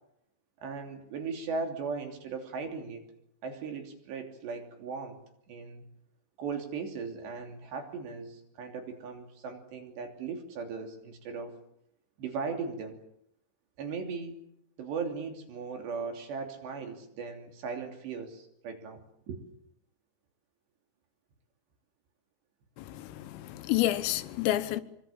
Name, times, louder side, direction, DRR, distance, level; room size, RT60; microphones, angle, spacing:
voice 1, 0.6-3.0 3.4-5.2 5.5-5.8 6.4-11.5 12.2-13.0 13.8-14.4 14.8-19.0 19.3-19.4, right 5 dB, 60° right, 5.0 m, -38 dB
voice 2, 22.8-24.8, left 14 dB, 80° left, 3.7 m, -29 dB
25.5 x 24.0 x 7.4 m
omnidirectional pair, 5.8 m